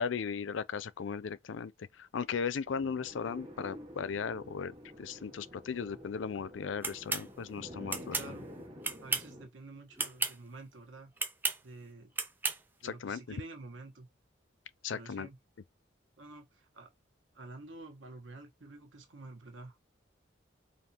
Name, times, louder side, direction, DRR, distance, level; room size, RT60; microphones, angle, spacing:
voice 1, 0.0-1.7 2.0-8.2 12.8-13.4 14.8-15.3, left 6 dB, 80° left, 0.4 m, -37 dB
sound 1, 2.6-9.5, equal, 25° right, 1.2 m, -49 dB
sound 2, 6.8-7.3 7.9-8.3 8.8-9.3 10.0-10.3 11.2-11.6 12.2-12.6, right 3 dB, 10° right, 0.4 m, -33 dB
voice 2, 8.0-8.5 9.0-11.1 11.6-12.1 12.8-14.1 14.9-15.4 16.2-16.9 17.3-19.8, right 3 dB, 80° right, 1.3 m, -49 dB
5.2 x 2.8 x 2.9 m
head